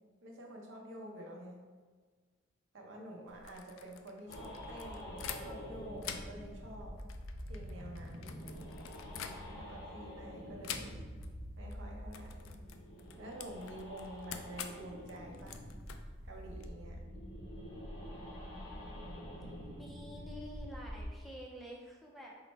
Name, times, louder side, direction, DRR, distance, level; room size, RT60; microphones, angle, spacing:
voice 1, 0.2-1.6 2.7-7.0 7.5-8.4 9.1-10.9 11.6-12.5 13.2-15.6 16.2-17.0, right 1 dB, 70° right, 0 dB, 0.7 m, -49 dB
sound 1, 3.3-5.7 6.0-9.8 10.6-11.3 11.6-11.8 12.1-16.7, left 8 dB, 90° left, 0.3 m, -47 dB
sound 2, 4.3-21.1, equal, 60° left, 0.8 m, -46 dB
voice 2, 19.8-22.3, equal, ahead, -3 dB, 0.4 m, -49 dB
3.9 x 2.1 x 4.4 m, 1.5 s
head